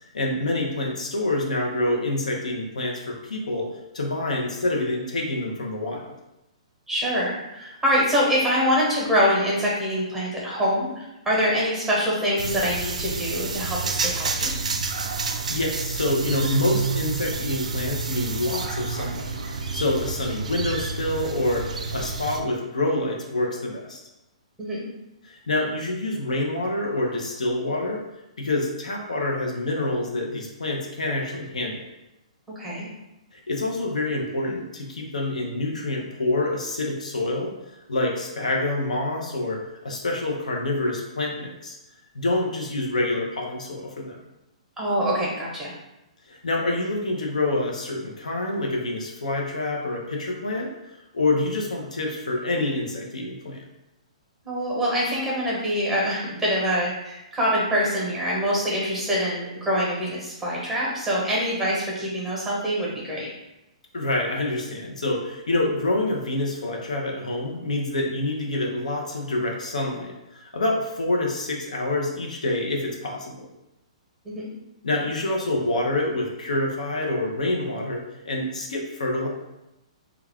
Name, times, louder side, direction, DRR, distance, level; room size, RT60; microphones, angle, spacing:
voice 1, 0.1-3.7 3.9-6.1 15.5-24.0 25.2-28.0 28.4-31.8 33.3-37.5 37.9-41.8 42.1-44.2 46.3-53.6 63.9-73.5 74.8-79.3, left 2 dB, 90° left, 0 dB, 0.6 m, -27 dB
voice 2, 6.9-14.5 24.6-24.8 32.6-32.9 44.8-45.7 54.4-63.3 74.2-74.5, equal, 5° right, -5 dB, 0.9 m, -25 dB
sound 1, 12.4-22.4, right 4 dB, 90° right, 0.3 m, -29 dB
2.3 x 2.3 x 3.3 m, 0.93 s
hypercardioid pair, 140°, 4 cm